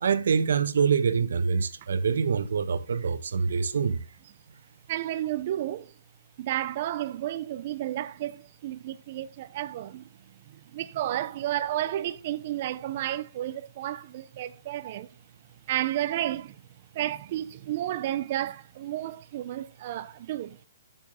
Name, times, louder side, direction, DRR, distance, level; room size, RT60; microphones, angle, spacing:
voice 1, 0.0-4.0, right 6 dB, 75° right, 1.2 m, -25 dB
voice 2, 4.9-5.9 6.4-10.1 10.5-15.2 15.7-16.6 16.9-20.6, right 13 dB, 40° right, 0.6 m, -32 dB
11.0 x 6.9 x 3.6 m
hypercardioid pair, 165°, 0 cm